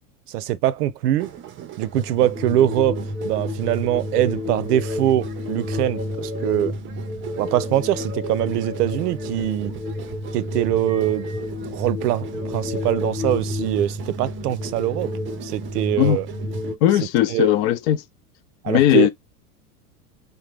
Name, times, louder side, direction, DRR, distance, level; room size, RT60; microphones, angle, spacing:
voice 1, 0.3-1.3 1.8-3.0 3.2-6.7 7.4-9.7 10.3-11.3 11.7-15.1 15.4-16.3 17.3-17.5 18.6-19.1, right 13 dB, 80° right, 0.6 m, -23 dB
sound 1, 1.2-16.8, right 11 dB, 25° right, 0.5 m, -39 dB
sound 2, 1.9-16.7, left 2 dB, 10° right, 0.9 m, -30 dB
voice 2, 16.8-18.0 18.7-19.1, left 12 dB, 50° left, 0.6 m, -18 dB
3.7 x 2.2 x 3.3 m
hypercardioid pair, 100°, 46 cm